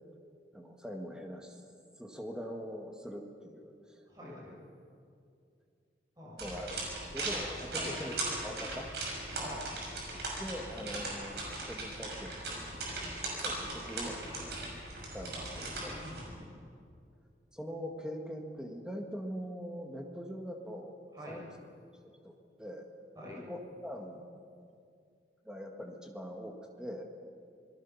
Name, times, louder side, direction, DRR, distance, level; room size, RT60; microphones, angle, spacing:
voice 1, 0.5-1.6 2.0-4.6 6.4-8.1 8.4-8.9 10.4-13.1 13.4-14.3 15.1-16.0 17.5-21.0 21.3-21.5 22.0-22.9 23.3-24.4 25.4-27.0, equal, 5° right, 2 dB, 1.8 m, -43 dB
voice 2, 4.1-4.5 6.2-6.4 7.7-8.0 9.3-9.6 15.3-15.5 15.9-16.6 21.1-21.4 23.2-23.4, equal, 20° right, -5 dB, 6.6 m, -45 dB
sound 1, 6.4-16.3, right 2 dB, 65° right, 6.0 m, -39 dB
26.0 x 20.5 x 5.9 m, 2.4 s
head